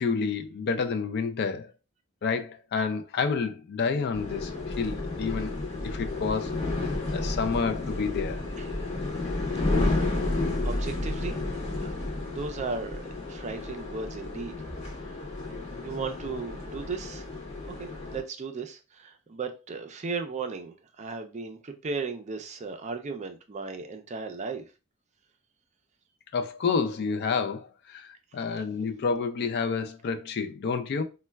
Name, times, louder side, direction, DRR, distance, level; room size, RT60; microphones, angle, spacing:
voice 1, 0.0-1.7 2.2-4.5 4.8-5.5 5.8-8.4 26.3-31.0, left 5 dB, 50° left, 0.4 m, -29 dB
sound 1, 4.1-18.2, left 2 dB, 30° left, 0.8 m, -31 dB
voice 2, 9.6-9.9 10.6-11.3 12.2-14.6 15.8-17.4 17.7-24.7, right 4 dB, 35° right, 0.4 m, -36 dB
4.1 x 2.2 x 2.2 m
head